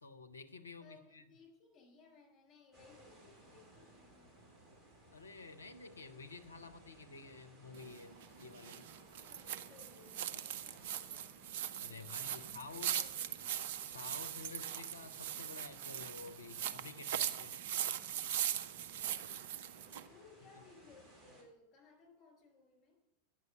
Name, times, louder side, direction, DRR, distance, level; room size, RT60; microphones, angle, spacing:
voice 1, 0.0-1.2 5.1-8.9 11.8-12.9 13.8-17.6, left 4 dB, 75° left, 8 dB, 0.8 m, -51 dB
voice 2, 0.8-4.5 9.0-11.3 11.8-13.5 17.6-18.1 18.6-19.4 20.0-22.9, left 4 dB, 35° left, 1 dB, 4.5 m, -63 dB
sound 1, 2.7-21.4, right 1 dB, 15° right, 2.8 m, -62 dB
sound 2, 7.7-20.1, right 10 dB, 55° right, 0.5 m, -40 dB
9.4 x 6.2 x 7.3 m, 0.86 s
figure-of-eight pair, 90°, 0 cm